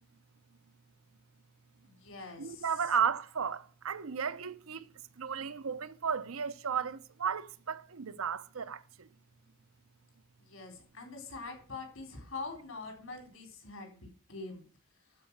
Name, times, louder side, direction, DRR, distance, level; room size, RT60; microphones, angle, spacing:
voice 1, 1.9-2.7 10.5-14.6, left 3 dB, 80° left, 3.8 m, -44 dB
voice 2, 2.4-9.1, right 7 dB, 90° right, 0.7 m, -34 dB
12.5 x 4.8 x 7.2 m
head